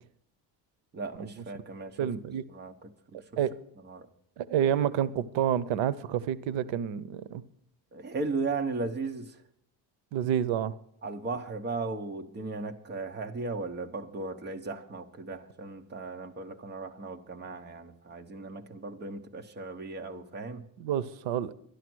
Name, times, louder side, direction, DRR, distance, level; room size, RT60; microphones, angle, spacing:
voice 1, 0.9-2.1 2.5-3.2 3.8-4.1 7.9-9.4 11.0-20.6, right 3 dB, 25° right, 0.9 m, -36 dB
voice 2, 2.0-2.4 3.4-3.6 4.4-7.4 10.1-10.8 20.8-21.5, right 9 dB, 90° right, 0.8 m, -29 dB
11.5 x 11.5 x 6.2 m
cardioid pair, 170°, 44 cm